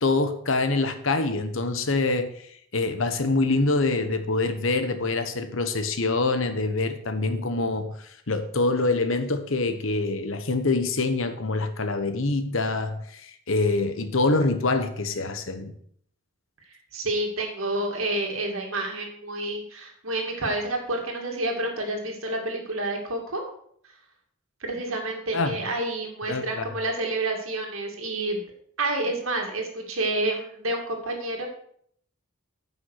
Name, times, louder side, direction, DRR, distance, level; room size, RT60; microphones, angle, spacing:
voice 1, 0.0-15.7 25.3-25.6 26.3-26.7, left 3 dB, 70° left, 1.1 m, -25 dB
voice 2, 16.9-23.4 24.6-28.4 28.8-31.5, right 2 dB, 75° right, 2.3 m, -29 dB
9.8 x 5.7 x 6.5 m
head